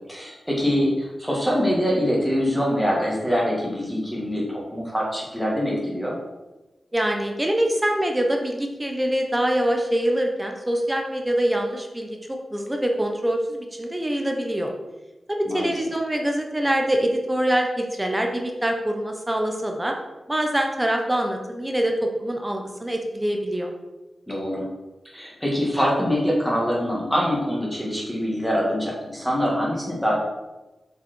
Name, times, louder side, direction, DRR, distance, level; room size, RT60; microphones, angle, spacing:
voice 1, 0.1-6.1 15.5-15.7 24.3-24.7 25.1-30.2, equal, 5° left, -3 dB, 2.3 m, -24 dB
voice 2, 6.9-14.7 15.3-19.9 20.3-23.7, right 1 dB, 10° right, 3 dB, 1.0 m, -24 dB
6.9 x 6.1 x 4.6 m, 1.1 s
wide cardioid pair, 155°, 0 cm